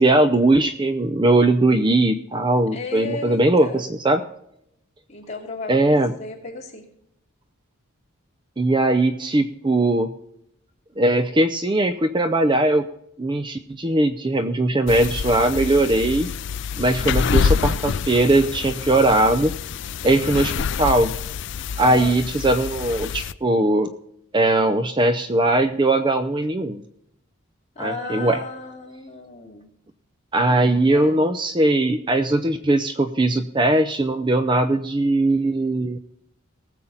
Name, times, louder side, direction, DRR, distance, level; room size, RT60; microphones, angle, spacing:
voice 1, 0.0-4.2 5.7-6.1 8.6-10.1 11.0-12.9 13.2-16.3 16.8-19.5 20.0-21.1 21.8-23.9 24.3-26.8 27.8-28.4 30.3-36.0, right 2 dB, 20° right, 10 dB, 0.6 m, -20 dB
voice 2, 2.7-3.8 5.1-6.8 21.8-22.2 27.7-29.7 30.9-31.2, left 3 dB, 30° left, -1 dB, 2.6 m, -34 dB
sound 1, 14.9-23.3, left 6 dB, 55° left, 0.4 m, -26 dB
19.0 x 7.4 x 3.9 m, 0.76 s
head